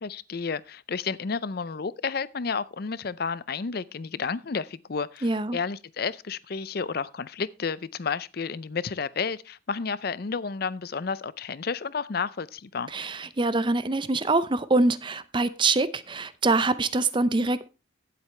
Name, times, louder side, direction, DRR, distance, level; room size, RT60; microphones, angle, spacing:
voice 1, 0.0-12.9, left 5 dB, 50° left, 0.5 m, -31 dB
voice 2, 5.2-5.6 12.9-17.7, right 3 dB, 25° right, 0.6 m, -24 dB
16.5 x 7.7 x 3.3 m
head